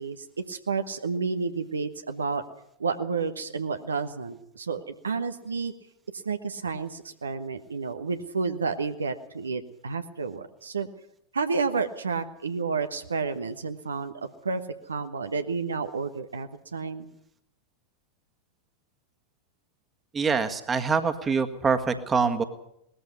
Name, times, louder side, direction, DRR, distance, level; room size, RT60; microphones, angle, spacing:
voice 1, 0.0-2.4 2.8-5.7 6.2-10.9 11.3-14.6 14.9-17.1, right 4 dB, 75° right, 8 dB, 1.2 m, -30 dB
voice 2, 20.1-22.4, right 5 dB, 20° right, 8 dB, 1.7 m, -25 dB
19.5 x 14.0 x 9.6 m, 0.77 s
figure-of-eight pair, 90°, 0 cm